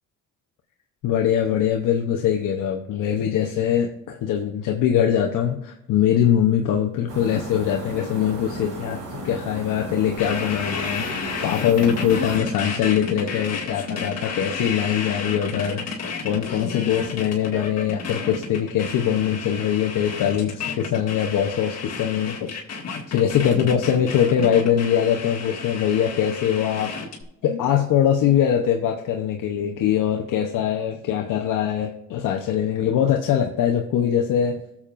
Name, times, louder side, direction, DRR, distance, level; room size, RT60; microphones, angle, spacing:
voice 1, 1.0-22.5 23.1-26.9 27.4-34.6, left 9 dB, 80° left, 2 dB, 0.9 m, -22 dB
sound 1, 7.1-12.4, right 1 dB, 75° right, 3.9 m, -35 dB
sound 2, 10.2-27.2, left 5 dB, 50° left, 2.1 m, -32 dB
20.0 x 7.2 x 2.5 m, 0.84 s
cardioid pair, 100°, 32 cm